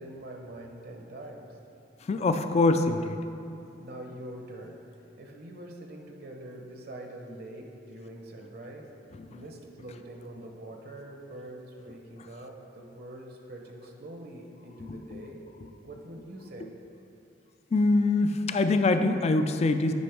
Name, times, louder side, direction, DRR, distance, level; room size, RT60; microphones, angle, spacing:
voice 1, 0.0-1.6 3.8-8.9 9.3-15.4 15.8-16.7, right 1 dB, 55° right, 2 dB, 0.7 m, -44 dB
voice 2, 2.1-3.2 14.8-15.0 17.7-19.9, left 3 dB, 35° left, 8 dB, 0.3 m, -24 dB
9.3 x 5.0 x 3.4 m, 2.6 s
head